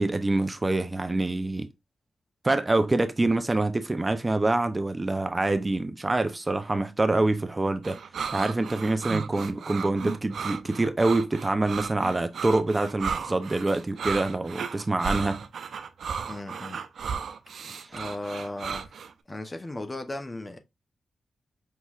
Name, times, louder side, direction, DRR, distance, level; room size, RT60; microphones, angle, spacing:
voice 1, 0.0-1.7 2.4-8.0 8.3-15.5, right 2 dB, 25° right, 0.5 m, -26 dB
sound 1, 7.8-19.1, right 6 dB, 80° right, 0.4 m, -34 dB
voice 2, 16.2-16.8 17.9-18.9 19.3-20.6, left 1 dB, 25° left, 0.7 m, -36 dB
5.6 x 3.0 x 2.4 m
cardioid pair, 75°, 0 cm